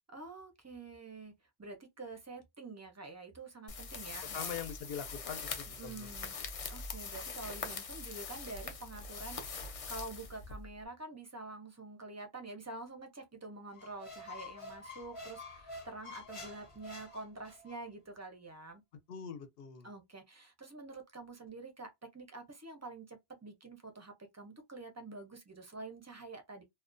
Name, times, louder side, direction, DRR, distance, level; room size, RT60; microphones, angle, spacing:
voice 1, 0.1-1.3 1.6-4.6 5.8-6.4 6.7-18.8 19.8-26.6, right 2 dB, 25° right, 0.4 m, -47 dB
sound 1, 3.7-10.8, left 4 dB, 50° left, 0.4 m, -43 dB
voice 2, 4.3-6.1 19.1-19.9, left 7 dB, 70° left, 0.8 m, -43 dB
Squeak, 13.7-17.8, left 2 dB, 35° left, 0.8 m, -48 dB
2.4 x 2.1 x 2.4 m
omnidirectional pair, 1.1 m